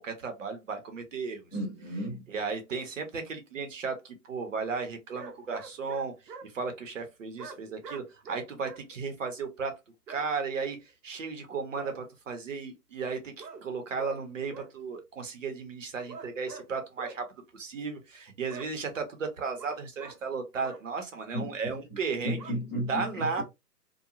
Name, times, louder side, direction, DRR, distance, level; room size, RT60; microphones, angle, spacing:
voice 1, 0.0-1.4 2.3-6.1 6.5-9.7 10.1-10.8 11.0-17.2 17.5-22.4 22.9-23.4, right 5 dB, 50° right, 0.8 m, -35 dB
voice 2, 1.5-2.2 21.3-21.5 22.2-23.4, equal, 10° left, 0.7 m, -33 dB
sound 1, 5.1-6.5 7.4-8.8 10.1-10.3 11.8-12.0 13.4-13.6 14.0-14.2 14.5-14.7 16.1-16.7 17.0-17.2 18.5-18.7 19.6-20.2 20.6-20.8 22.4-22.5, right 4 dB, 80° right, 0.8 m, -44 dB
2.8 x 2.2 x 2.4 m
hypercardioid pair, 160°, 49 cm